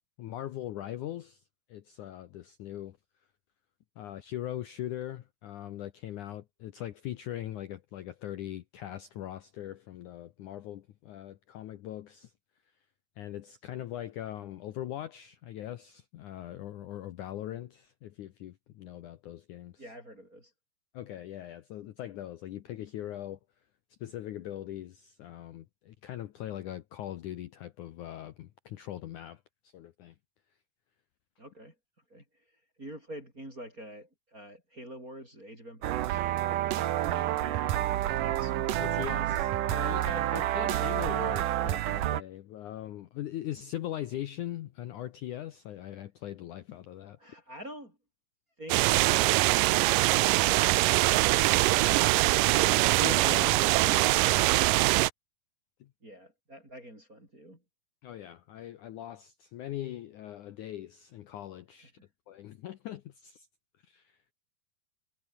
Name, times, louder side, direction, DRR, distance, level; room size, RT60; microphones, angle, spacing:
voice 1, 0.2-1.4 1.7-3.0 4.0-12.3 13.2-19.8 20.9-23.4 24.0-30.2 38.8-47.2 53.0-54.9 55.8-55.9 58.0-61.9 62.3-63.5 63.8-64.2, left 12 dB, 70° left, 2.0 m, -41 dB
voice 2, 19.8-20.5 31.4-31.8 32.1-36.2 36.6-38.6 47.2-48.0 56.0-57.6 61.7-61.8, equal, 20° right, 8.0 m, -47 dB
sound 1, 35.8-42.2, right 13 dB, 65° right, 2.4 m, -29 dB
sound 2, 48.7-55.1, right 19 dB, 85° right, 1.9 m, -23 dB
omnidirectional pair, 4.6 m